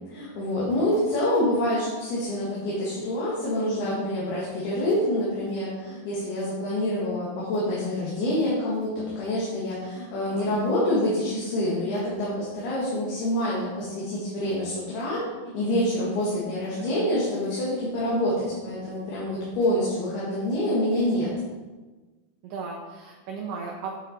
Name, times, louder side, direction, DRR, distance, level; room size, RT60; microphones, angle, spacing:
voice 1, 0.1-15.2 15.5-21.3, left 1 dB, 75° left, -7 dB, 3.8 m, -26 dB
voice 2, 16.8-17.1 22.4-23.9, right 5 dB, 75° right, 0 dB, 2.1 m, -36 dB
8.7 x 7.2 x 4.4 m, 1.3 s
omnidirectional pair, 4.6 m